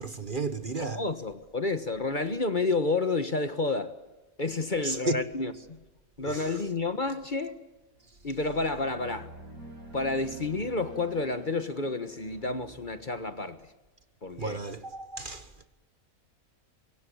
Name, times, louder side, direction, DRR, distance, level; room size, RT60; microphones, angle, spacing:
voice 1, 0.0-1.0 4.8-5.2 6.2-6.5 14.4-15.5, right 2 dB, 40° right, 1.5 m, -33 dB
voice 2, 0.8-4.0 4.4-5.8 6.2-7.6 8.2-9.3 9.9-13.6 14.2-14.6, left 3 dB, 35° left, 1.4 m, -30 dB
sound 1, 8.0-8.2 8.6-13.5, right 1 dB, 75° right, 6.2 m, -48 dB
25.0 x 22.5 x 8.5 m
omnidirectional pair, 1.5 m